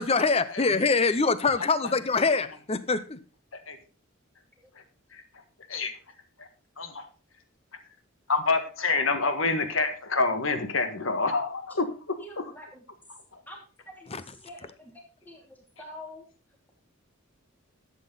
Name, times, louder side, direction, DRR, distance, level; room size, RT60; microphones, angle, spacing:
voice 1, 0.0-3.2 14.1-14.2, left 4 dB, 30° left, 0.7 m, -24 dB
voice 2, 1.5-1.9 3.7-3.8 5.7-5.9 6.8-7.1 8.3-12.4 13.3-13.4, left 3 dB, 70° left, 1.6 m, -27 dB
voice 3, 12.2-12.8 13.5-14.9 15.2-16.2, left 1 dB, 10° left, 2.7 m, -46 dB
11.5 x 8.4 x 4.0 m
head